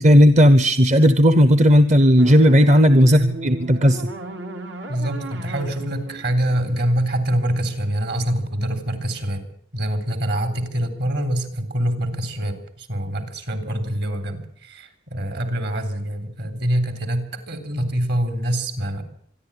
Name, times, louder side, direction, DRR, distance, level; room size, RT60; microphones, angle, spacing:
voice 1, 0.0-4.1, equal, 40° right, 11 dB, 0.9 m, -14 dB
sound 1, 2.2-7.3, right 2 dB, 80° right, 3.3 m, -36 dB
voice 2, 4.9-9.4 9.7-19.0, right 1 dB, 60° right, 9 dB, 3.7 m, -25 dB
25.5 x 11.5 x 9.9 m, 0.64 s
head